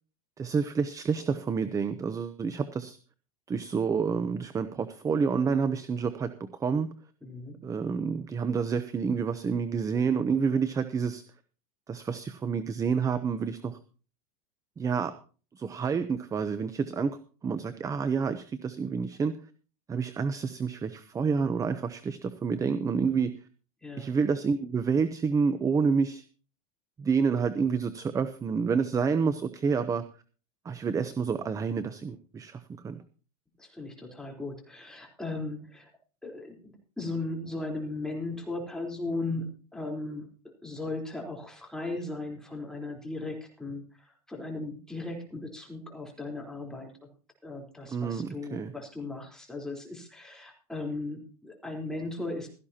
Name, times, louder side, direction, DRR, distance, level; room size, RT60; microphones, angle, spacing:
voice 1, 0.4-3.0 3.5-6.9 7.6-11.2 11.9-13.8 14.8-15.1 15.6-19.3 19.9-23.3 24.0-26.2 27.0-30.0 30.6-33.0 47.9-48.7, right 5 dB, 15° right, 12 dB, 0.8 m, -28 dB
voice 2, 7.2-7.6 23.8-24.1 33.6-35.9 36.2-39.4 39.7-40.3 40.6-47.1 47.4-52.5, left 2 dB, 5° left, 0 dB, 3.9 m, -37 dB
16.5 x 14.0 x 2.9 m, 0.37 s
supercardioid pair, 135°, 20 cm